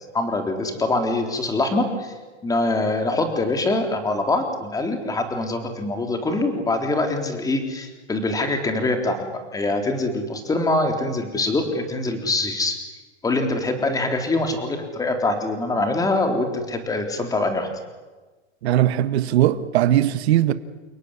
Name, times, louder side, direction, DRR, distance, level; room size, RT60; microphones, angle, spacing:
voice 1, 0.1-2.1 2.4-12.8 13.2-17.7, left 2 dB, 10° left, 3.7 m, -24 dB
voice 2, 18.6-20.5, right 13 dB, 65° right, 1.6 m, -19 dB
30.0 x 18.0 x 10.0 m
supercardioid pair, 150°, 35 cm